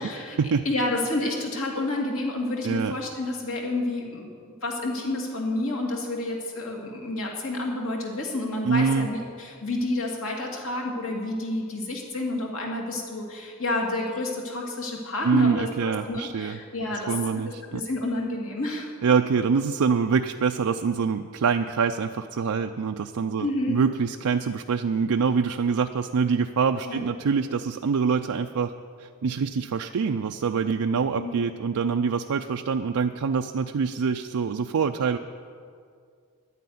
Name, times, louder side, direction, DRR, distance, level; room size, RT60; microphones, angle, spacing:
voice 1, 0.0-0.4 0.6-4.3 4.6-17.1 17.7-18.9 23.4-23.8 26.8-27.0 31.2-31.4, left 2 dB, 70° left, -1 dB, 2.5 m, -29 dB
voice 2, 2.6-3.0 8.6-9.1 15.2-16.6 17.1-17.8 19.0-28.7 29.0-35.2, right 5 dB, 85° right, 6 dB, 0.4 m, -25 dB
11.0 x 9.3 x 9.3 m, 2.2 s
head